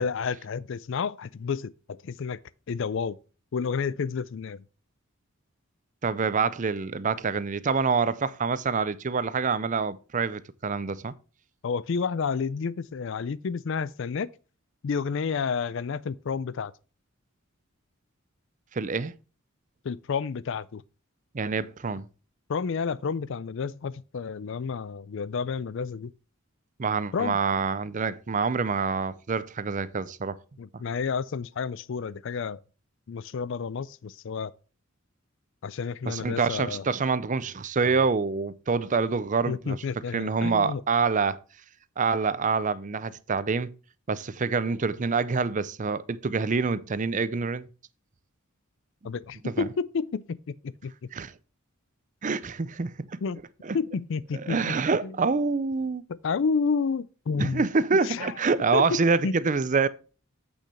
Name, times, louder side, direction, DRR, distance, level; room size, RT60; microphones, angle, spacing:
voice 1, 0.0-2.4 2.7-3.2 3.5-4.6 11.6-14.3 14.8-16.7 19.8-20.8 22.5-26.1 27.1-27.4 30.6-32.6 33.1-34.5 35.6-36.8 39.5-40.8 49.0-50.4 50.8-50.9 53.2-53.4 53.7-54.6 55.0-55.2 56.2-57.6 58.0-58.3 58.7-59.3, left 5 dB, 60° left, 0.4 m, -30 dB
voice 2, 6.0-11.1 18.7-19.1 21.3-22.1 26.8-30.4 36.1-39.8 40.1-41.4 42.0-43.7 44.1-47.7 49.4-49.7 51.1-51.3 52.2-53.2 53.6-53.8 54.3-56.0 57.4-59.9, right 4 dB, 35° right, 0.5 m, -26 dB
8.1 x 6.1 x 4.1 m
head